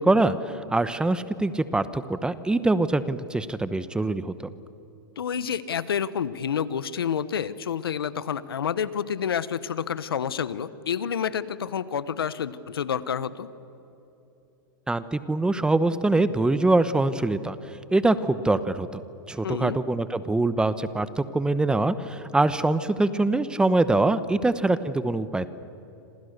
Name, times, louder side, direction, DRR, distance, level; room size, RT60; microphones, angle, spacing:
voice 1, 0.0-4.3 14.9-17.6 17.9-19.0 19.3-25.5, right 2 dB, 5° right, 14 dB, 1.0 m, -24 dB
voice 2, 5.2-13.5 19.4-19.8, left 8 dB, 90° left, 16 dB, 1.2 m, -29 dB
28.5 x 26.5 x 6.8 m, 3.0 s
hypercardioid pair, 120°, 12 cm